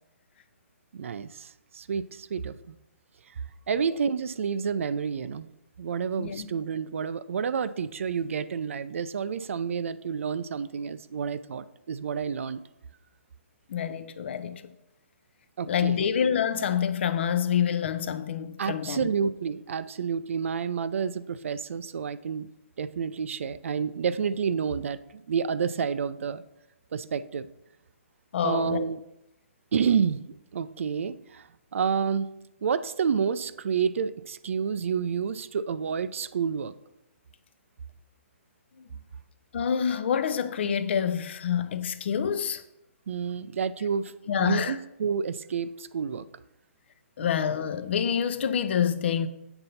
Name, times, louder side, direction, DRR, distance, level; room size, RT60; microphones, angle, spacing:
voice 1, 0.9-2.8 3.7-5.5 5.8-12.6 15.6-16.0 18.6-22.5 22.8-26.4 26.9-27.5 28.4-29.0 29.7-30.2 30.5-32.3 32.6-36.7 43.1-46.3 47.2-47.3, right 6 dB, 70° right, 0.5 m, -29 dB
voice 2, 13.7-14.6 15.7-19.1 28.3-28.8 38.8-38.9 39.5-42.6 44.3-44.8 47.2-49.3, left 8 dB, 55° left, 0.7 m, -27 dB
7.9 x 4.0 x 5.7 m
hypercardioid pair, 155°, 7 cm